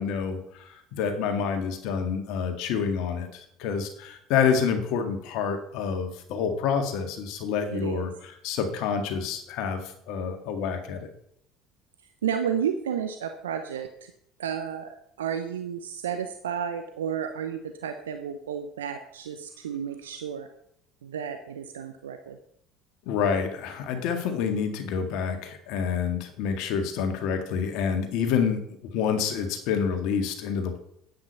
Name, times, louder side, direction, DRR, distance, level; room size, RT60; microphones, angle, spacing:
voice 1, 0.0-11.1 23.1-30.8, left 6 dB, 60° left, 6 dB, 1.9 m, -28 dB
voice 2, 7.7-8.1 12.2-14.1 14.4-20.5 21.0-22.4, right 8 dB, 75° right, 7 dB, 0.7 m, -32 dB
10.5 x 8.6 x 5.6 m, 0.72 s
figure-of-eight pair, 65°, 0 cm